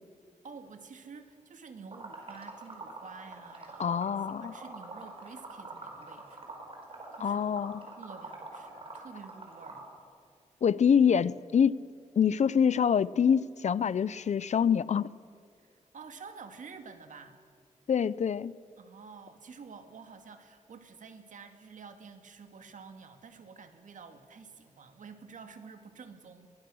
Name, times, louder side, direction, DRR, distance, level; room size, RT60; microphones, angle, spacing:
voice 1, 0.4-6.5 6.9-7.4 7.9-9.9 15.9-17.4 18.8-26.5, right 5 dB, 80° right, 7 dB, 2.0 m, -49 dB
Liquid, 1.9-9.9, right 3 dB, 45° right, 5.1 m, -45 dB
voice 2, 3.8-4.5 7.2-7.8 10.6-11.9 12.2-15.1 17.9-18.5, left 7 dB, 65° left, 19 dB, 0.6 m, -25 dB
22.5 x 21.5 x 6.3 m, 2.2 s
wide cardioid pair, 115°, 13 cm